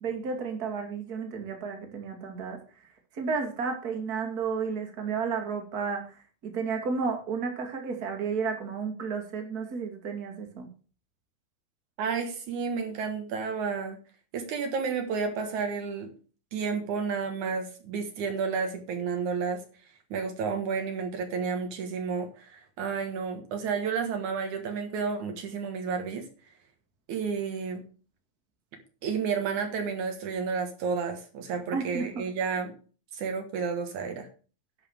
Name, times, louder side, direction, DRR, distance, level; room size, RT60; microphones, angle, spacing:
voice 1, 0.0-2.6 3.1-6.2 6.4-10.7 31.7-32.2, right 5 dB, 30° right, 4 dB, 2.3 m, -32 dB
voice 2, 12.0-14.0 14.3-16.1 16.5-19.6 20.1-26.3 27.1-27.9 29.0-32.7 33.1-34.3, right 5 dB, 70° right, 5 dB, 2.8 m, -31 dB
11.0 x 5.8 x 7.0 m, 0.38 s
omnidirectional pair, 3.6 m